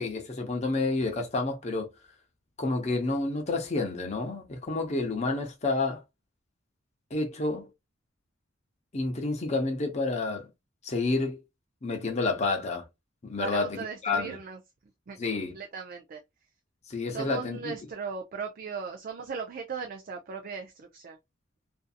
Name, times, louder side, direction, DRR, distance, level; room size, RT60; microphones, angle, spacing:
voice 1, 0.0-1.9 2.6-6.0 7.1-7.7 8.9-10.5 10.8-11.4 11.8-12.8 13.2-14.4 15.2-15.5 16.9-17.7, left 3 dB, 35° left, 0.7 m, -29 dB
voice 2, 13.4-14.6 15.1-16.2 17.1-21.2, right 5 dB, 45° right, 0.4 m, -38 dB
2.6 x 2.5 x 2.4 m
head